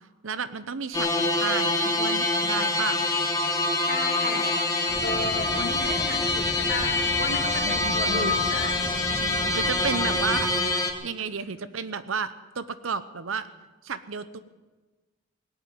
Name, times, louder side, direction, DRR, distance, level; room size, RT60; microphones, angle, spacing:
voice 1, 0.2-3.1 7.6-8.3 9.5-10.5 11.0-13.5 13.8-14.4, right 5 dB, 75° right, 13 dB, 0.8 m, -32 dB
sound 1, 0.9-10.9, left 2 dB, 15° left, 1.3 m, -25 dB
voice 2, 3.8-4.6 5.0-8.7 9.0-9.6, left 2 dB, 50° left, 1 dB, 3.1 m, -34 dB
sound 2, 4.9-10.5, equal, 20° right, 2.3 m, -37 dB
18.0 x 8.3 x 9.3 m, 1.2 s
head